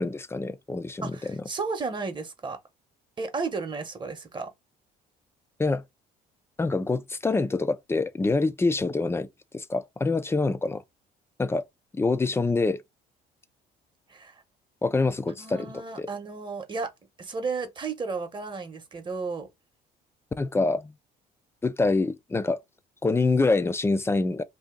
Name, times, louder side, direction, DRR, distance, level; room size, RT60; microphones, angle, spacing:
voice 1, 0.0-1.4 5.6-5.8 6.6-9.3 9.5-10.8 11.4-11.6 11.9-12.8 14.8-15.7 16.0-16.1 20.4-20.9 21.6-22.6 23.0-24.4, left 3 dB, 15° left, 0.4 m, -25 dB
voice 2, 1.0-2.6 3.2-4.5 14.1-14.4 15.4-16.9 17.2-19.5, right 4 dB, 30° right, 0.9 m, -33 dB
2.7 x 2.6 x 3.6 m
cardioid pair, 110°, 17 cm